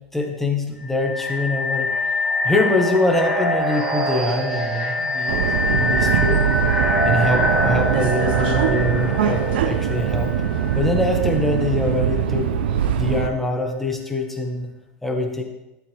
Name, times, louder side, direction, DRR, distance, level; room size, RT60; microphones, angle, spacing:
voice 1, 0.1-1.9 2.4-5.4 5.6-6.4 7.0-10.3 10.7-12.5 13.0-14.7 15.0-15.4, left 2 dB, 5° left, 1 dB, 1.6 m, -24 dB
sound 1, 0.8-11.6, left 1 dB, 20° right, 3.7 m, -24 dB
Subway metro underground, 5.3-13.3, right 9 dB, 80° right, 0.8 m, -22 dB
12.0 x 8.0 x 3.5 m, 0.98 s
supercardioid pair, 120°, 5 cm